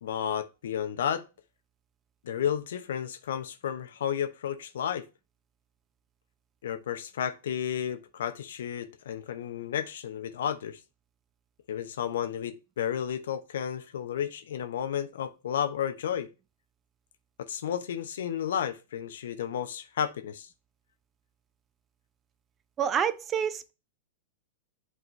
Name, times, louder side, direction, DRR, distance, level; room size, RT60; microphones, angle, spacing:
voice 1, 0.0-1.2 2.2-5.1 6.6-10.8 11.7-16.3 17.4-20.5, left 9 dB, 65° left, 0.8 m, -32 dB
voice 2, 22.8-23.7, right 8 dB, 25° right, 0.5 m, -28 dB
8.1 x 3.7 x 3.2 m
figure-of-eight pair, 100°, 0 cm